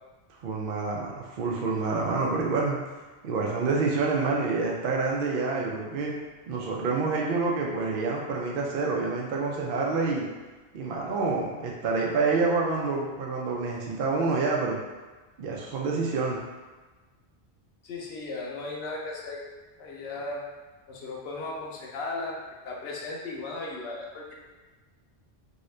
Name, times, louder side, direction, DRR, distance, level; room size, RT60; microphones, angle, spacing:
voice 1, 0.4-2.8 3.2-6.2 6.5-10.3 10.7-14.8 15.4-16.4, right 4 dB, 60° right, -2 dB, 0.7 m, -27 dB
voice 2, 17.8-19.4 19.8-20.4 20.9-22.4 22.6-24.3, left 3 dB, 75° left, -3 dB, 0.9 m, -36 dB
2.8 x 2.6 x 3.1 m, 1.3 s
omnidirectional pair, 1.1 m